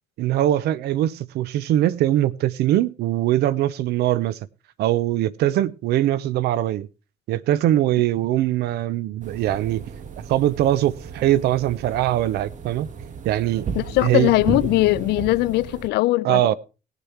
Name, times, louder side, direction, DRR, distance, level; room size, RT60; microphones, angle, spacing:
voice 1, 0.2-4.4 4.8-6.9 7.3-9.8 10.3-12.9 13.2-13.7 14.0-14.3 16.2-16.5, right 13 dB, 75° right, 0.7 m, -21 dB
sound 1, 9.2-15.9, right 5 dB, 50° right, 1.4 m, -34 dB
voice 2, 13.7-16.5, left 18 dB, 80° left, 0.6 m, -20 dB
18.0 x 6.8 x 4.5 m
cardioid pair, 110°, 17 cm